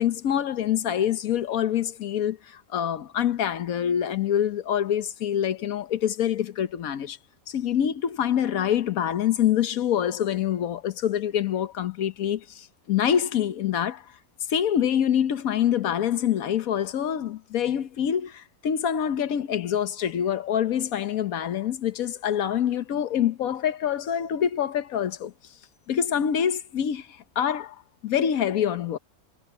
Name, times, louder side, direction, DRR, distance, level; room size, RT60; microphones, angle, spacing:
voice 1, 0.0-7.2 7.5-14.0 14.5-25.3 25.9-27.8 28.0-29.0, left 9 dB, 70° left, 1.3 m, -25 dB
omnidirectional pair, 1.5 m